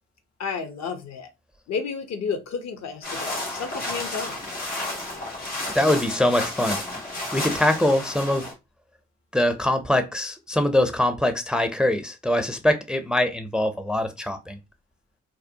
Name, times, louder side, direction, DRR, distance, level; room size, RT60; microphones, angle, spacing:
voice 1, 0.4-1.3 1.7-4.4, left 5 dB, 60° left, 0.6 m, -31 dB
sound 1, 3.0-8.5, left 2 dB, 90° left, 1.2 m, -32 dB
voice 2, 5.7-6.8 7.3-8.5 9.3-14.6, left 1 dB, 5° right, 0.4 m, -23 dB
2.6 x 2.0 x 2.7 m
hypercardioid pair, 40°, 30 cm